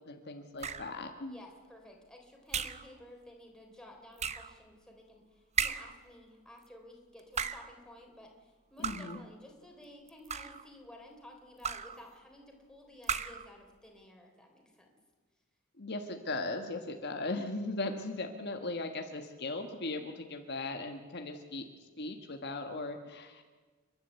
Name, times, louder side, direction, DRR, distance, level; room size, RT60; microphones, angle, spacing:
voice 1, 0.1-1.4 8.8-9.2 15.8-21.6 22.0-23.4, left 2 dB, 55° left, 5 dB, 1.4 m, -38 dB
sound 1, 0.6-1.0 2.5-2.9 4.2-4.6 5.6-6.0 7.2-7.8 8.8-9.2 10.1-10.7 11.6-12.0 13.0-13.5, right 6 dB, 35° right, 0.7 m, -35 dB
voice 2, 1.3-14.9, left 1 dB, 5° left, 1 dB, 3.6 m, -54 dB
29.5 x 11.5 x 8.2 m, 1.4 s
head